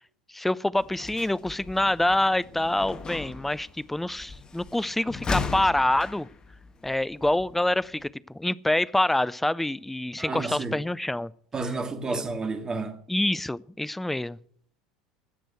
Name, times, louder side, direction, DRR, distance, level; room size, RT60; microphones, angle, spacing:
voice 1, 0.3-6.3 6.8-11.3 12.1-12.2 13.1-14.4, left 1 dB, 5° left, 0.5 m, -26 dB
sound 1, 0.7-8.1, left 4 dB, 30° left, 1.5 m, -37 dB
voice 2, 10.2-10.7 11.5-13.0, right 3 dB, 25° right, 2.0 m, -31 dB
16.5 x 6.2 x 7.9 m
hypercardioid pair, 75°, 3 cm